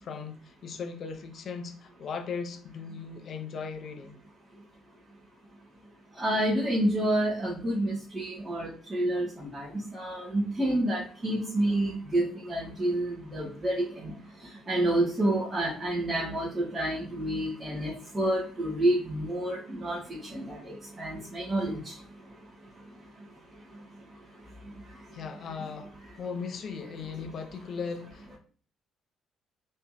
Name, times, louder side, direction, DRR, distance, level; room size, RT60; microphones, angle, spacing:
voice 1, 0.0-4.2 25.1-25.9 26.2-28.4, left 5 dB, 50° left, 0.6 m, -38 dB
voice 2, 6.2-14.1 14.7-20.0 20.3-21.9, right 1 dB, 25° right, 2.0 m, -29 dB
4.2 x 3.6 x 2.8 m
figure-of-eight pair, 45°, 0 cm